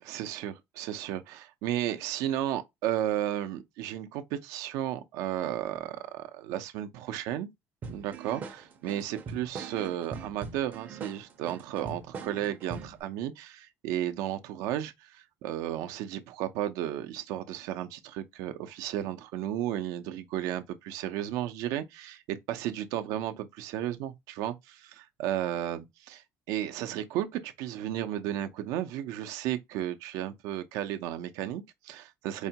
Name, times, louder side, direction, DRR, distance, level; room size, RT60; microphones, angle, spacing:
voice 1, 0.1-7.5 7.9-32.5, right 12 dB, 75° right, 0.6 m, -34 dB
sound 1, 7.8-13.0, right 5 dB, 30° right, 0.5 m, -42 dB
4.7 x 2.2 x 2.8 m
cardioid pair, 165°, 6 cm